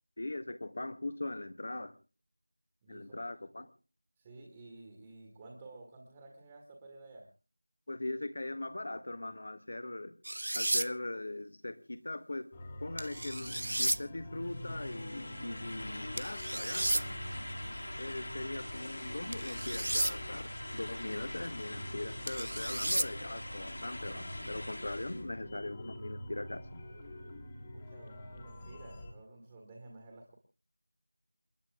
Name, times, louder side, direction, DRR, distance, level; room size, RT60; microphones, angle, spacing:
voice 1, 0.2-2.0 2.9-3.7 7.9-10.1 10.5-12.5 12.8-17.1 18.0-26.8, left 2 dB, 40° left, 1.5 m, -40 dB
voice 2, 2.8-3.3 4.2-7.3 27.7-30.4, right 2 dB, 10° right, 2.0 m, -52 dB
sound 1, 10.2-10.9 13.0-14.0 16.2-17.0 19.3-20.1 22.3-23.1, right 1 dB, 65° right, 0.6 m, -33 dB
sound 2, 12.5-29.1, left 1 dB, 15° left, 1.9 m, -46 dB
sound 3, 14.4-25.3, left 1 dB, 70° left, 5.0 m, -44 dB
28.5 x 9.9 x 3.7 m
figure-of-eight pair, 175°, 0 cm